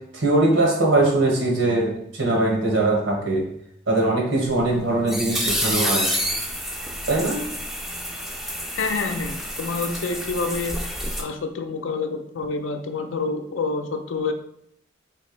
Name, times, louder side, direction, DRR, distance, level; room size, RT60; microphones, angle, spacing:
voice 1, 0.1-3.4 3.9-6.1 7.1-7.4, right 2 dB, 85° right, -1 dB, 1.4 m, -21 dB
sound 1, 4.5-11.2, equal, ahead, 0.4 m, -28 dB
voice 2, 8.7-10.9 11.2-14.3, left 4 dB, 80° left, 5 dB, 0.5 m, -27 dB
3.4 x 2.9 x 4.5 m, 0.74 s
head